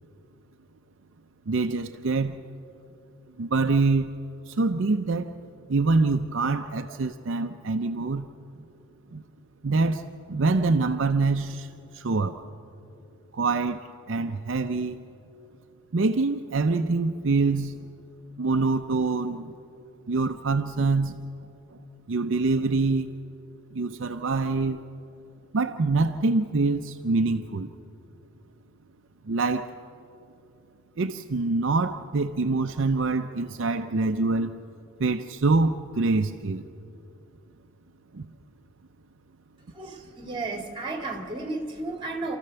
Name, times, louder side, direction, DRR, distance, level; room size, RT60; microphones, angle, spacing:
voice 1, 1.5-2.4 3.4-4.1 4.5-5.3 5.7-8.3 9.1-9.2 9.6-10.0 10.3-11.7 11.9-12.4 13.3-15.0 15.9-17.7 18.4-19.5 20.1-21.1 22.1-23.1 23.7-24.8 25.5-27.7 29.3-29.7 31.0-34.5 35.0-36.6 38.1-38.3, right 3 dB, 60° right, 6 dB, 0.6 m, -25 dB
voice 2, 39.6-42.4, right 2 dB, 25° right, 3 dB, 2.1 m, -33 dB
28.0 x 14.0 x 6.9 m, 2.7 s
head